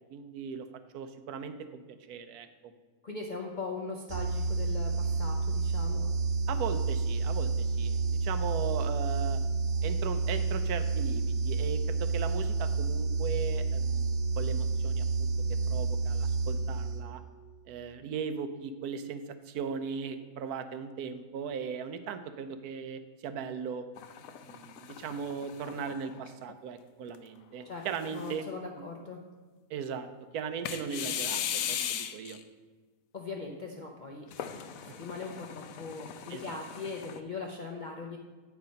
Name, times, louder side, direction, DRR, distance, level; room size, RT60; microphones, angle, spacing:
voice 1, 0.1-0.7 0.9-1.8 2.1-2.5 6.5-9.4 9.8-15.3 15.7-17.2 17.7-23.9 24.4-28.4 29.7-32.4 34.9-35.0 36.3-36.6, right 6 dB, 75° right, 10 dB, 1.1 m, -38 dB
voice 2, 3.0-6.1 27.6-27.8 28.1-29.2 33.1-38.2, left 4 dB, 55° left, 0 dB, 0.5 m, -40 dB
sound 1, 4.1-17.2, right 4 dB, 50° right, 1.3 m, -30 dB
sound 2, 24.0-26.5 27.1-27.2 27.9-28.6 30.7-32.4 34.3-37.2, left 9 dB, 70° left, 0.9 m, -38 dB
8.5 x 4.8 x 5.2 m, 1.4 s
omnidirectional pair, 1.6 m